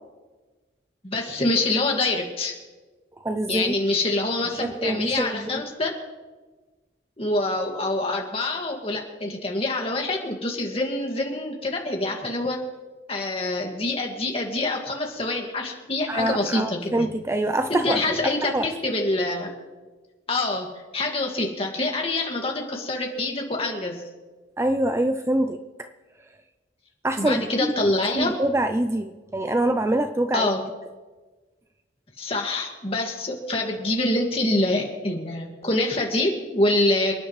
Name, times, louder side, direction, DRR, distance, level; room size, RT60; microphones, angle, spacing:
voice 1, 1.0-2.6 3.5-5.9 7.2-12.6 13.1-17.1 17.8-19.5 20.3-20.7 20.9-24.0 27.2-28.3 30.3-30.6 32.2-37.1, left 2 dB, 30° left, 1 dB, 2.0 m, -25 dB
voice 2, 3.2-3.7 4.6-5.5 16.1-18.7 24.6-25.9 27.0-27.5 28.1-30.5, right 1 dB, 15° right, 8 dB, 0.4 m, -25 dB
28.0 x 9.7 x 3.2 m, 1.3 s
head